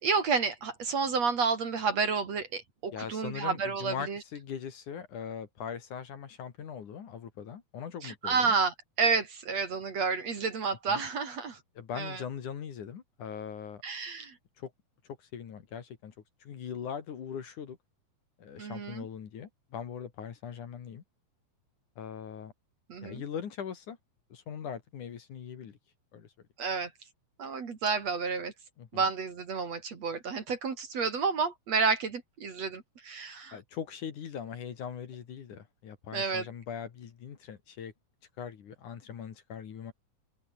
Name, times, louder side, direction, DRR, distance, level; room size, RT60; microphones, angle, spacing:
voice 1, 0.0-4.2 8.0-11.6 11.9-12.2 13.8-14.4 18.6-19.1 22.9-23.2 26.6-26.9 27.4-28.5 28.9-33.6 36.1-36.5, right 5 dB, 45° right, 3.6 m, -30 dB
voice 2, 2.9-8.5 10.9-11.0 11.8-13.8 14.6-14.7 15.2-16.1 16.4-17.8 18.4-21.0 22.0-22.5 23.0-24.0 24.3-25.8 26.1-26.3 28.8-29.1 33.5-37.9 38.4-39.9, left 7 dB, 55° left, 3.4 m, -40 dB
open air
omnidirectional pair, 4.4 m